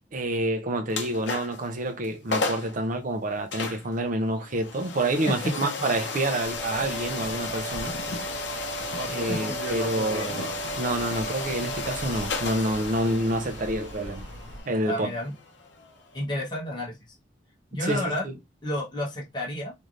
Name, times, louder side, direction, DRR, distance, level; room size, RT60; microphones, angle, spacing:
voice 1, 0.1-7.9 9.1-10.5 10.8-14.3 14.7-15.1 17.9-18.3, right 1 dB, 45° right, 0.5 m, -28 dB
sound 1, 0.9-1.7 2.0-2.1 2.3-2.8 3.5-16.2, left 3 dB, 65° left, 0.7 m, -33 dB
voice 2, 5.3-5.7 9.3-9.6 10.0-10.3 14.8-15.3 16.1-17.0 17.7-18.3 18.6-19.7, left 1 dB, 25° left, 0.9 m, -31 dB
sound 2, 6.4-14.6, right 1 dB, 75° right, 0.9 m, -40 dB
3.2 x 2.6 x 2.5 m
head